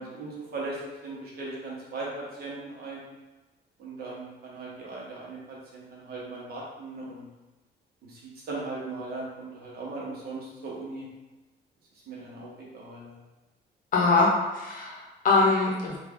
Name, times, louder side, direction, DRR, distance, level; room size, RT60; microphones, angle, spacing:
voice 1, 0.0-3.0 3.8-7.3 8.0-8.2 8.5-11.0 12.1-13.2, right 3 dB, 55° right, -4 dB, 1.0 m, -38 dB
voice 2, 13.9-16.0, left 3 dB, 45° left, -3 dB, 0.8 m, -23 dB
3.2 x 2.3 x 3.5 m, 1.1 s
cardioid pair, 170°, 19 cm